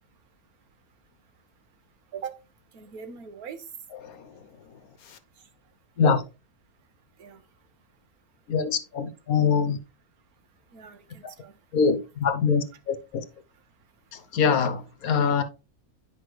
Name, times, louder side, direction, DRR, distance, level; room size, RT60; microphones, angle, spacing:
voice 1, 2.7-3.7 7.2-7.4 10.7-11.6, right 7 dB, 80° right, 1.6 m, -41 dB
voice 2, 4.0-4.4 5.1-5.2 6.0-6.2 8.5-9.8 11.7-13.2 14.1-15.4, left 6 dB, 75° left, 1.4 m, -24 dB
10.0 x 5.2 x 3.2 m
omnidirectional pair, 1.6 m